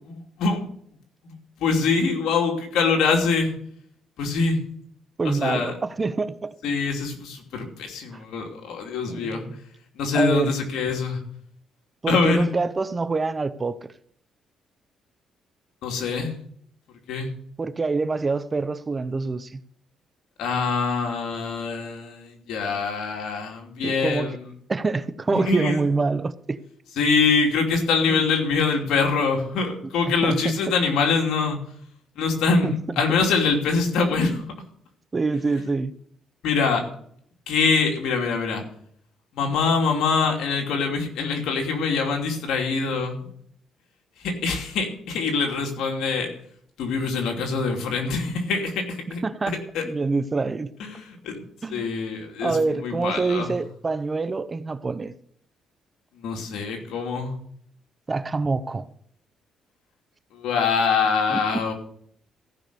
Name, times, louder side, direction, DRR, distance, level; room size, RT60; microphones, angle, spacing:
voice 1, 0.1-0.6 1.2-1.3 1.6-3.5 4.2-4.6 5.2-5.7 6.6-9.5 10.0-11.2 12.1-12.5 15.8-16.3 17.1-17.3 20.4-24.4 25.3-25.8 27.0-31.6 32.2-34.4 36.4-36.8 37.5-38.6 39.3-43.3 44.2-46.3 46.8-49.2 49.5-49.9 50.8-51.4 51.7-53.5 56.2-57.3 60.3-61.7, left 4 dB, 85° left, 2.8 m, -24 dB
voice 2, 5.2-6.5 9.1-9.6 10.1-10.5 12.0-13.9 17.6-19.6 23.8-24.4 24.7-26.6 28.1-28.3 30.1-30.5 32.6-32.8 35.1-35.9 49.2-49.5 49.8-50.7 51.6-51.9 52.4-55.1 58.1-58.9 61.3-61.6, right 3 dB, 30° right, 0.8 m, -26 dB
14.5 x 6.0 x 6.8 m
cardioid pair, 90°, 0 cm